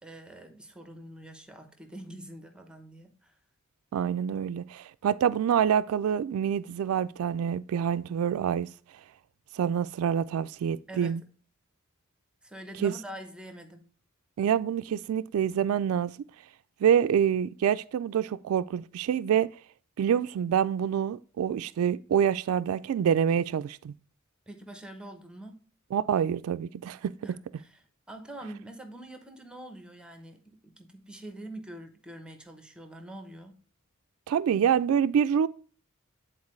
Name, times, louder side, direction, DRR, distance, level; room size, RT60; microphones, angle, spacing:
voice 1, 0.0-3.3 10.9-11.1 12.4-13.9 24.5-25.6 27.2-33.6, right 1 dB, 5° right, 0.8 m, -45 dB
voice 2, 3.9-8.7 9.5-11.2 12.8-12.9 14.4-16.2 16.8-19.5 20.0-23.9 25.9-27.1 34.3-35.5, right 8 dB, 80° right, 0.3 m, -26 dB
9.6 x 4.2 x 3.2 m
head